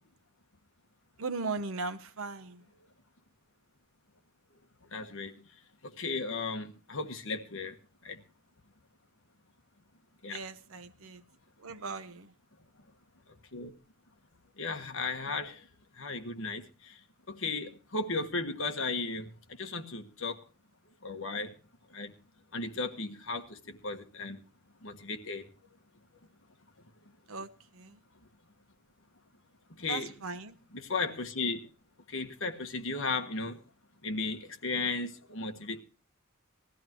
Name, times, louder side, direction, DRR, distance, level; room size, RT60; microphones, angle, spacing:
voice 1, 1.2-2.6 10.3-11.2 11.6-12.3 27.3-28.0 29.9-30.6, right 3 dB, 75° right, 1.0 m, -38 dB
voice 2, 4.9-5.3 6.0-7.7 8.0-8.2 10.2-10.4 13.5-13.7 14.6-15.6 16.0-16.9 17.3-19.3 19.6-20.4 21.0-21.5 21.9-22.1 22.5-24.4 24.8-25.5 29.7-30.1 30.7-31.7 32.1-33.6 34.0-35.8, left 3 dB, 65° left, 1.5 m, -35 dB
20.0 x 14.5 x 3.0 m
head